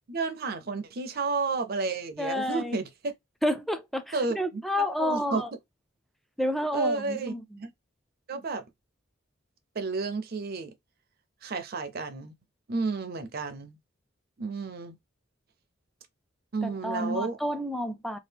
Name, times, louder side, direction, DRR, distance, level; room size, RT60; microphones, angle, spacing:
voice 1, 0.1-2.9 4.1-5.4 6.7-7.7 8.3-8.6 9.8-10.7 11.4-12.3 12.7-13.8 14.4-15.0 16.5-17.4, right 4 dB, 50° right, 0.5 m, -31 dB
voice 2, 2.2-2.8 3.4-5.5 6.4-7.4 16.6-18.2, left 1 dB, ahead, 0.3 m, -30 dB
2.8 x 2.4 x 3.3 m
head